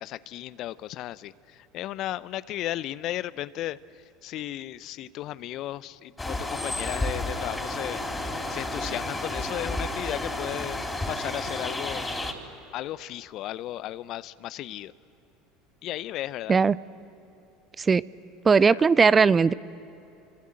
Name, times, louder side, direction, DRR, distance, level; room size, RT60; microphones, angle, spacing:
voice 1, 0.0-8.0 8.5-12.1 12.7-14.9 15.8-16.6 18.7-18.9, left 14 dB, 50° left, 18 dB, 0.7 m, -35 dB
sound 1, 6.2-12.3, left 1 dB, 15° left, 3.9 m, -31 dB
voice 2, 18.4-19.5, right 5 dB, 25° right, 19 dB, 0.6 m, -18 dB
29.5 x 25.0 x 7.8 m, 2.9 s
figure-of-eight pair, 70°, 0 cm